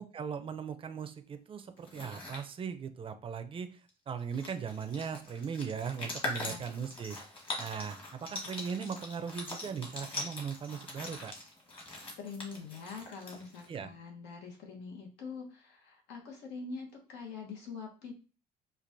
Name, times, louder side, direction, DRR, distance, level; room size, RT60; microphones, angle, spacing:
voice 1, 0.0-3.7 4.1-7.2 7.6-11.3 13.7-13.9, right 6 dB, 30° right, 9 dB, 0.4 m, -38 dB
sound 1, 1.8-2.4 3.9-4.0 4.2-13.7, left 2 dB, 30° left, 1.4 m, -42 dB
voice 2, 12.2-18.1, left 4 dB, 80° left, 2 dB, 1.2 m, -44 dB
4.4 x 2.4 x 2.6 m, 0.35 s
cardioid pair, 110°, 17 cm